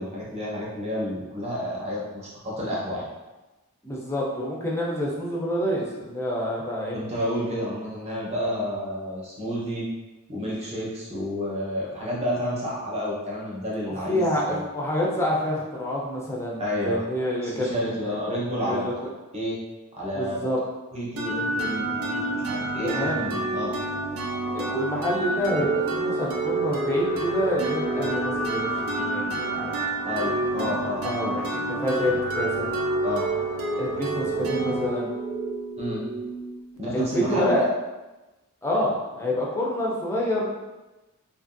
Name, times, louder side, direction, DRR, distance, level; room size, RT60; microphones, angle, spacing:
voice 1, 0.0-3.1 6.9-9.9 10.3-14.6 16.6-17.0 17.4-18.9 19.3-19.6 20.0-20.4 20.9-23.7 30.0-31.4 33.0-33.3 35.8-36.0 36.8-37.6, equal, 30° right, -5 dB, 0.8 m, -30 dB
voice 2, 3.8-7.0 14.1-18.2 18.7-18.9 20.1-20.6 22.8-23.2 24.5-29.7 30.6-32.7 33.8-35.1 36.9-37.7 38.6-40.5, equal, 10° left, -4 dB, 0.5 m, -28 dB
sound 1, 21.2-36.8, right 2 dB, 70° right, 0.5 m, -28 dB
2.8 x 2.5 x 2.5 m, 1.1 s
head